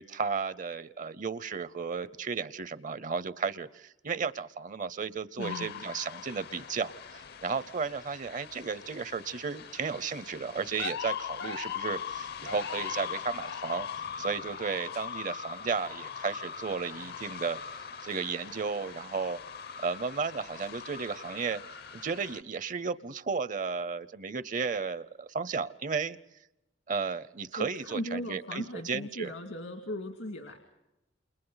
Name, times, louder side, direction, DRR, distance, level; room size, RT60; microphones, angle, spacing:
voice 1, 0.0-13.9 14.2-17.6 18.0-19.4 19.8-21.6 21.9-26.2 26.9-29.3, right 5 dB, 45° right, 16 dB, 0.7 m, -34 dB
voice 2, 5.4-5.7 27.6-30.6, left 1 dB, 80° left, 3 dB, 2.3 m, -37 dB
sound 1, 5.4-22.4, left 7 dB, 60° left, 0.8 m, -41 dB
29.0 x 28.5 x 4.0 m, 0.92 s
head